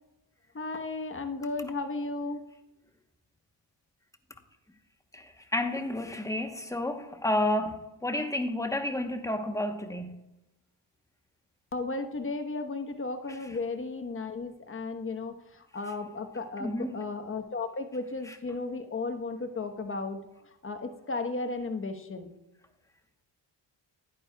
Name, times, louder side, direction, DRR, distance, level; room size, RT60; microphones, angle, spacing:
voice 1, 0.5-2.4 11.7-20.2 20.6-22.3, left 3 dB, 30° left, 6 dB, 1.1 m, -34 dB
voice 2, 5.1-10.2 16.6-17.0, left 1 dB, 5° left, 6 dB, 1.0 m, -31 dB
10.5 x 9.4 x 2.3 m, 0.95 s
cardioid pair, 80°, 44 cm